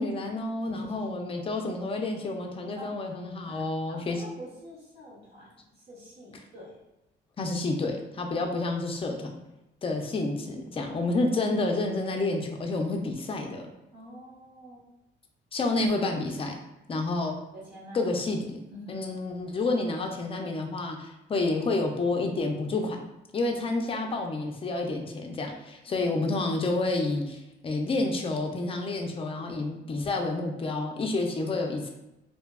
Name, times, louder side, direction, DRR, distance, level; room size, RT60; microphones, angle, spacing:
voice 1, 0.0-4.2 7.4-9.3 9.8-13.7 15.5-16.6 16.9-17.4 17.9-18.6 18.9-23.0 23.3-31.9, left 2 dB, 30° left, 3 dB, 0.4 m, -29 dB
voice 2, 0.6-1.1 2.7-2.9 3.4-6.8 13.9-14.8 17.5-18.1 18.7-19.2, equal, 55° right, -7 dB, 1.0 m, -45 dB
2.7 x 2.2 x 2.2 m, 0.93 s
cardioid pair, 90°, 20 cm